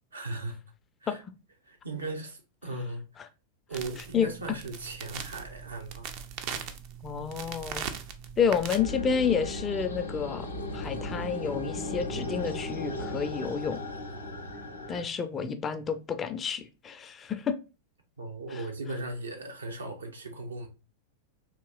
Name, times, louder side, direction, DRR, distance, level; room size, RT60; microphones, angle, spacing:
voice 1, 0.1-0.6 1.0-1.2 1.6-3.1 3.7-6.1 18.2-20.7, right 2 dB, 75° right, 0.7 m, -37 dB
sound 1, 3.7-8.8, right 8 dB, 45° right, 0.4 m, -40 dB
voice 2, 7.0-7.9 8.4-10.5 10.7-13.8 14.9-17.6 18.5-18.6, left 6 dB, 25° left, 0.4 m, -29 dB
sound 2, 8.7-15.0, left 1 dB, 80° left, 0.6 m, -36 dB
3.6 x 2.8 x 2.2 m
figure-of-eight pair, 90°, 0 cm